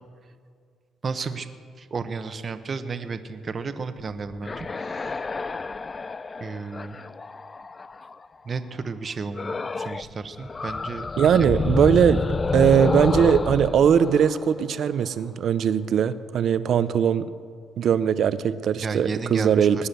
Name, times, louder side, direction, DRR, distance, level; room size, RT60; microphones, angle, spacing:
voice 1, 1.0-1.5 1.8-5.2 6.4-7.0 8.4-11.5 18.8-19.9, right 4 dB, 40° right, 10 dB, 1.1 m, -33 dB
sound 1, 4.4-8.3 9.4-10.1 10.4-15.3, left 4 dB, 30° left, 0.4 m, -29 dB
voice 2, 11.2-12.2 12.5-17.3 17.8-19.9, right 8 dB, 65° right, 14 dB, 0.7 m, -20 dB
20.0 x 9.8 x 6.9 m, 2.1 s
cardioid pair, 90°, 0 cm